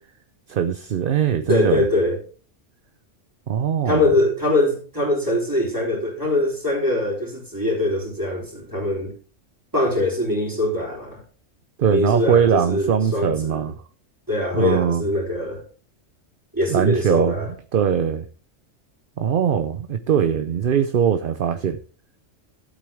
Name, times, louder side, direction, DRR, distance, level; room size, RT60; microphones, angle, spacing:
voice 1, 0.5-1.8 3.5-4.0 11.8-13.7 14.5-15.0 16.7-17.4 17.7-18.3 19.2-21.8, right 8 dB, 50° right, 0.7 m, -21 dB
voice 2, 1.5-2.2 3.8-9.1 9.7-11.2 11.9-13.6 14.3-15.6 16.5-17.5, left 2 dB, 15° right, 3.6 m, -22 dB
12.5 x 8.5 x 3.4 m
omnidirectional pair, 1.3 m